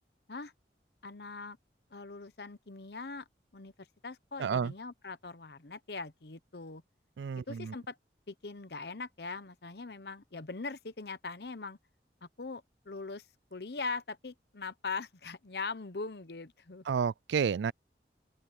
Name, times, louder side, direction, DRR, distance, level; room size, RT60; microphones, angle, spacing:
voice 1, 1.0-1.6 1.9-3.2 3.5-3.7 4.0-6.8 7.5-8.0 8.3-11.8 12.2-13.3 13.5-16.8, left 4 dB, 65° left, 0.9 m, -41 dB
voice 2, 4.4-4.7 7.2-7.7 16.9-17.7, right 6 dB, 80° right, 0.4 m, -30 dB
open air
head